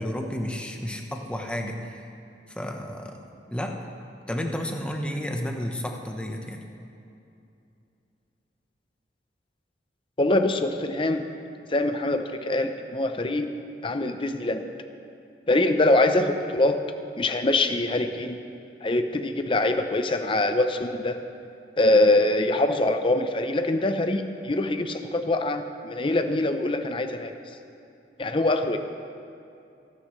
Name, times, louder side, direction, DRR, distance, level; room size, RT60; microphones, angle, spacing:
voice 1, 0.0-2.0 2.5-3.2 3.5-3.8 4.3-6.6, equal, 5° left, 2 dB, 1.0 m, -31 dB
voice 2, 10.2-11.2 11.7-13.5 13.8-14.6 15.5-16.8 17.2-18.4 18.8-21.2 21.8-27.3 28.2-28.8, left 2 dB, 30° left, 7 dB, 0.7 m, -23 dB
25.5 x 9.9 x 3.2 m, 2.6 s
head